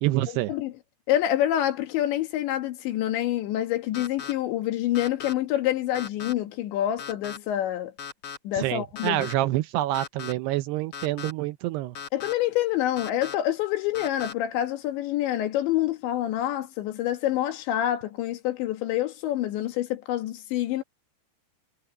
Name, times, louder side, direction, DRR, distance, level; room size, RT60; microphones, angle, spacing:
voice 1, 0.0-0.5 8.6-12.0, right 15 dB, 80° right, 2.6 m, -27 dB
voice 2, 1.1-7.9 8.4-9.3 12.1-20.8, left 13 dB, 80° left, 4.1 m, -27 dB
sound 1, 3.9-4.3 4.9-5.3 5.9-6.3 7.0-7.4 8.0-8.4 8.9-9.3 9.9-10.3 10.9-11.3 11.9-12.3 13.0-13.3 13.9-14.3, left 7 dB, 60° left, 1.6 m, -37 dB
omnidirectional pair, 5.1 m